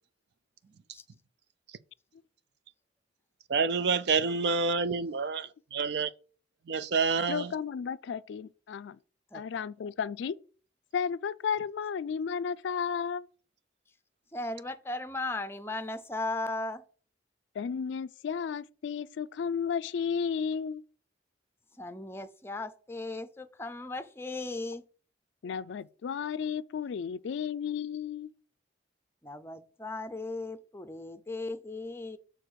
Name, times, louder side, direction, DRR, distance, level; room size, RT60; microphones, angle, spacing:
voice 1, 3.5-6.1 6.7-7.5, right 5 dB, 60° right, 0.4 m, -28 dB
voice 2, 7.3-8.9 9.3-10.4 10.9-13.3 17.6-20.8 25.4-28.3, left 6 dB, 75° left, 0.3 m, -33 dB
voice 3, 14.3-16.8 21.8-24.8 29.2-32.2, left 2 dB, 15° left, 0.5 m, -37 dB
6.7 x 3.8 x 6.2 m
head